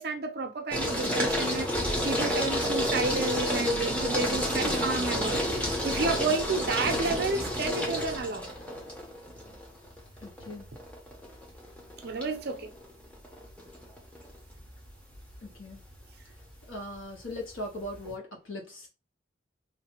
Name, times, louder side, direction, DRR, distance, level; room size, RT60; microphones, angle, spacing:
voice 1, 0.0-5.4 5.8-8.5 12.0-12.7, right 3 dB, 50° right, 0.5 m, -31 dB
sound 1, 0.7-18.1, equal, 5° left, 0.6 m, -31 dB
voice 2, 10.2-10.7 15.4-15.8 16.7-18.9, left 1 dB, 70° left, 1.1 m, -39 dB
3.1 x 2.1 x 2.9 m
head